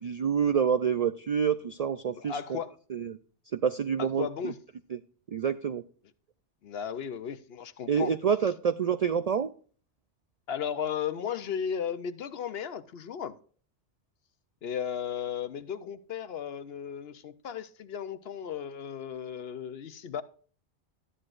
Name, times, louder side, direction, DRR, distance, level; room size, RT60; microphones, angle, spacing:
voice 1, 0.0-2.6 2.9-3.2 3.5-4.5 4.9-5.0 5.3-5.8 7.9-9.5, right 7 dB, 75° right, 0.3 m, -27 dB
voice 2, 2.1-2.7 4.0-4.6 6.6-8.1 10.5-13.3 14.6-20.2, left 8 dB, 65° left, 0.8 m, -35 dB
12.5 x 9.7 x 2.4 m
omnidirectional pair, 1.2 m